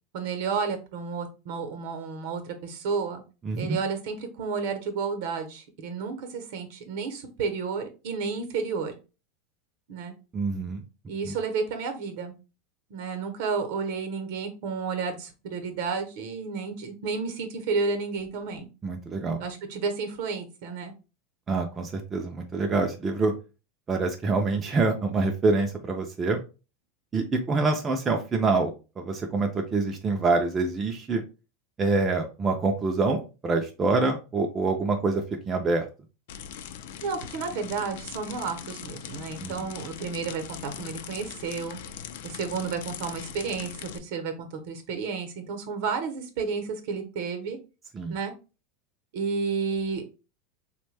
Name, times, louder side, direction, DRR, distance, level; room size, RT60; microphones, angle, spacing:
voice 1, 0.1-3.2 3.6-9.0 9.9-10.1 11.1-12.3 12.9-18.7 19.4-20.9 37.0-41.8 42.2-47.6 48.1-48.3 49.1-50.0, right 5 dB, 60° right, 7 dB, 0.7 m, -31 dB
voice 2, 3.4-3.8 10.3-10.8 11.2-11.3 18.8-19.4 21.5-23.3 23.9-26.4 27.1-31.2 31.8-35.9 39.4-39.5 47.9-48.1, right 3 dB, 15° right, 2 dB, 0.4 m, -26 dB
sound 1, 36.3-44.0, left 9 dB, 70° left, 0.3 m, -41 dB
3.4 x 2.1 x 3.2 m, 0.31 s
supercardioid pair, 155°, 0 cm